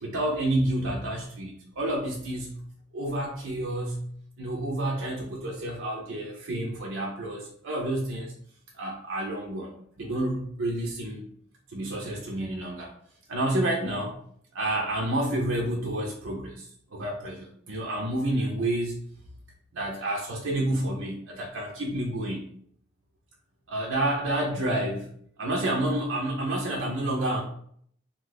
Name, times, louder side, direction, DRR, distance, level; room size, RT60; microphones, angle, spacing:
voice 1, 0.0-2.6 2.9-8.3 8.7-11.3 11.7-12.9 13.3-14.2 14.5-19.0 19.7-22.5 23.7-25.1 25.4-27.4, right 1 dB, 80° right, -1 dB, 0.6 m, -29 dB
2.6 x 2.4 x 3.9 m, 0.63 s
head